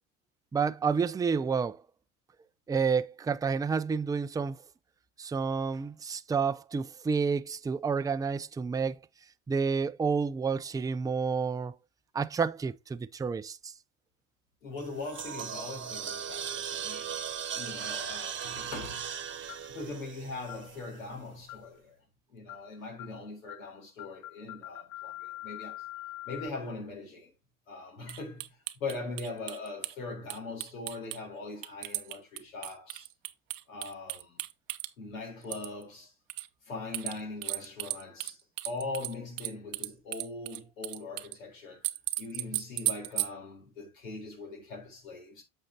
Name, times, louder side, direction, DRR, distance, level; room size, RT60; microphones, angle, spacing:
voice 1, 0.5-1.8 2.7-4.6 5.2-9.0 9.5-11.7 12.1-13.7, right 5 dB, 10° right, 0.4 m, -29 dB
voice 2, 14.6-17.2 17.5-19.1 19.7-22.0 22.3-25.8 26.3-27.3 27.7-33.1 33.7-34.4 35.0-36.1 36.7-38.4 38.6-41.9 42.2-45.4, left 3 dB, 80° left, 4.0 m, -41 dB
sound 1, 14.8-21.1, right 8 dB, 30° right, 1.1 m, -38 dB
sound 2, 19.5-19.8 20.5-20.7 21.5-21.8 22.5-22.7 23.0-23.2 23.5-23.7 24.0-26.5, left 17 dB, 55° left, 0.6 m, -44 dB
sound 3, 28.1-29.9 30.3-31.2 31.6-34.9 35.4-35.8 36.3-36.5 36.9-38.3 38.6-41.4 41.8-43.3, right 19 dB, 75° right, 0.7 m, -35 dB
8.7 x 6.7 x 2.8 m
hypercardioid pair, 80°, 39 cm